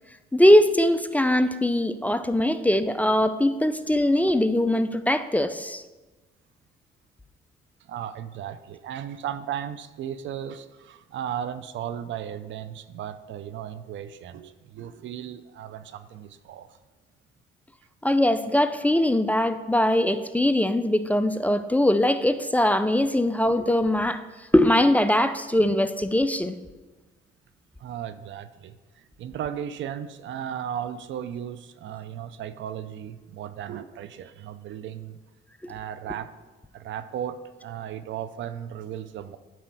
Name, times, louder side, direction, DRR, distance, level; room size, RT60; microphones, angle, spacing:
voice 1, 0.3-5.8 18.0-24.2 24.5-26.6, left 1 dB, 5° left, 10 dB, 0.4 m, -21 dB
voice 2, 7.8-16.7 27.8-35.2 35.7-36.3 36.7-39.4, right 9 dB, 70° right, 13 dB, 0.5 m, -35 dB
9.2 x 4.3 x 6.0 m, 1.2 s
cardioid pair, 90°, 20 cm